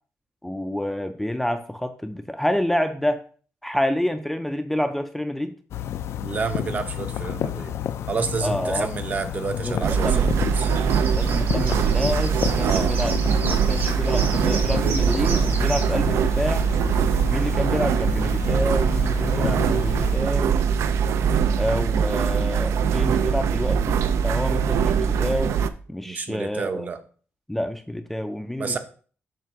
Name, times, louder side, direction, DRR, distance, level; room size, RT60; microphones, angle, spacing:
voice 1, 0.4-3.2 3.6-5.6 8.4-8.9 9.6-10.4 11.1-13.1 13.7-16.7 17.3-20.6 21.6-25.6 25.9-26.9 27.5-28.8, left 1 dB, 5° left, 7 dB, 0.4 m, -28 dB
sound 1, 5.7-20.2, left 10 dB, 70° left, 0.4 m, -31 dB
voice 2, 6.2-7.8 8.1-10.7 12.6-13.0 26.0-27.0 28.6-28.8, right 5 dB, 35° right, 8 dB, 0.7 m, -29 dB
sound 2, 9.8-25.7, right 7 dB, 80° right, 0.4 m, -22 dB
sound 3, 10.4-15.9, right 3 dB, 55° right, 1.5 m, -35 dB
7.5 x 2.6 x 5.8 m, 0.41 s
cardioid pair, 150°, 5 cm